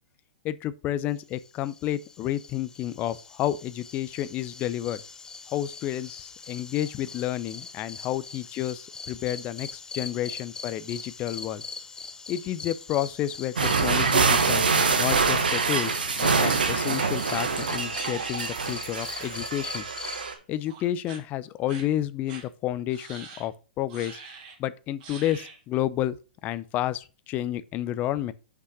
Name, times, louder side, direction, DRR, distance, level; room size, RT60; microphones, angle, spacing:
voice 1, 0.4-5.0 5.5-11.6 12.3-13.5 13.8-19.8 20.5-24.2 24.6-26.2 26.4-28.3, left 12 dB, 35° left, 0.6 m, -30 dB
sound 1, 1.3-20.2, left 4 dB, 15° left, 1.1 m, -42 dB
sound 2, 13.6-20.3, right 4 dB, 85° right, 1.5 m, -25 dB
sound 3, 17.2-19.8 20.1-20.4 20.7-21.2 21.7-21.8 22.3-22.4 22.9-23.5 23.9-24.6 25.0-25.6, right 5 dB, 50° right, 3.0 m, -46 dB
6.1 x 5.7 x 6.1 m
hypercardioid pair, 120°, 5 cm